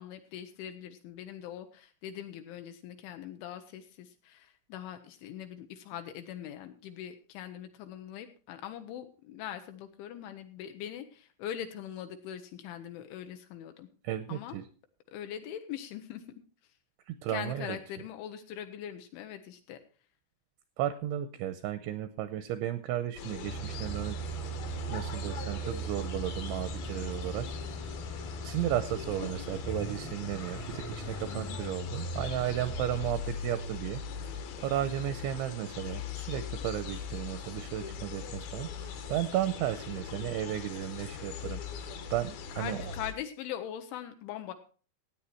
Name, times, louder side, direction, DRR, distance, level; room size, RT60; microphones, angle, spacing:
voice 1, 0.0-13.9 14.3-14.6 15.1-16.2 16.6-16.7 17.3-19.8 31.3-31.6 42.5-44.5, left 10 dB, 80° left, 7 dB, 2.9 m, -42 dB
voice 2, 14.0-14.6 17.1-17.8 20.8-24.2 24.9-27.5 28.4-34.0 34.6-38.7 39.1-41.6 42.1-42.9, right 12 dB, 80° right, 11 dB, 2.7 m, -34 dB
sound 1, 23.2-43.1, left 6 dB, 65° left, 2.6 m, -41 dB
sound 2, 23.5-33.3, right 2 dB, 25° left, 0.7 m, -39 dB
16.5 x 9.0 x 4.3 m, 0.40 s
omnidirectional pair, 5.9 m